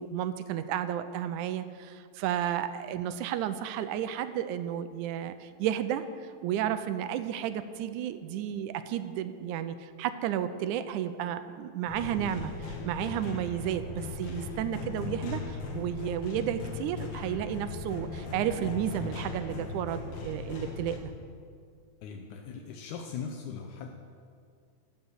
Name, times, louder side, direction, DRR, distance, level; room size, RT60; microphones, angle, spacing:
voice 1, 0.0-21.1, right 10 dB, 80° right, 11 dB, 2.0 m, -32 dB
sound 1, 11.9-21.0, left 4 dB, 55° left, 1.4 m, -38 dB
voice 2, 22.0-23.9, left 6 dB, 80° left, 2 dB, 2.2 m, -39 dB
15.0 x 5.5 x 7.9 m, 2.2 s
omnidirectional pair, 3.6 m